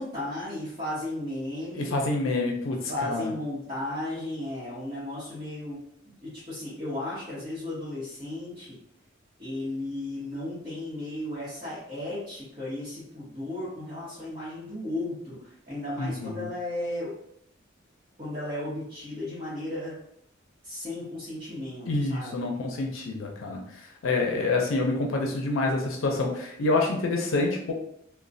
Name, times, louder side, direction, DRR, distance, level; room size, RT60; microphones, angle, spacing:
voice 1, 0.0-1.9 2.9-5.8 6.2-8.8 9.4-17.2 18.2-20.0 20.6-22.4, left 1 dB, 25° right, -13 dB, 1.0 m, -35 dB
voice 2, 1.7-3.3 16.0-16.5 21.9-27.7, left 2 dB, 85° left, 1 dB, 0.5 m, -27 dB
3.0 x 2.1 x 2.5 m, 0.71 s
head